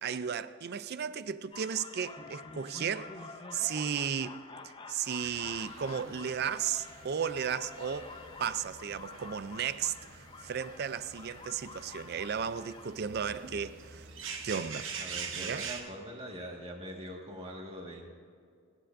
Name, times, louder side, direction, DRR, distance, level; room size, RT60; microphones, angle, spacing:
voice 1, 0.0-3.2 3.5-8.1 8.4-14.1 14.4-14.9 15.3-15.7, right 7 dB, 50° right, 0.4 m, -35 dB
sound 1, 1.5-13.5, left 4 dB, 25° left, 0.6 m, -48 dB
sound 2, 5.2-15.8, right 5 dB, 65° right, 1.1 m, -45 dB
voice 2, 15.0-18.1, equal, 30° right, 1.7 m, -43 dB
27.5 x 10.0 x 2.6 m
head